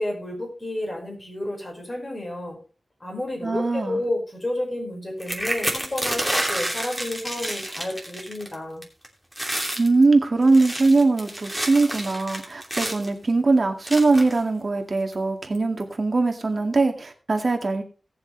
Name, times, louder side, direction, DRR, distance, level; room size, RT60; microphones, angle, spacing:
voice 1, 0.0-2.6 3.0-8.8, left 1 dB, 30° left, 1 dB, 5.0 m, -31 dB
voice 2, 3.4-4.0 9.8-17.8, right 3 dB, 50° right, 4 dB, 2.0 m, -21 dB
sound 1, 5.2-8.5 8.8-9.1 9.3-9.9 10.4-13.1 13.9-14.4 15.1-15.2 15.5-15.8, right 1 dB, ahead, 2.8 m, -29 dB
18.5 x 7.1 x 3.2 m, 0.38 s
wide cardioid pair, 105°, 0 cm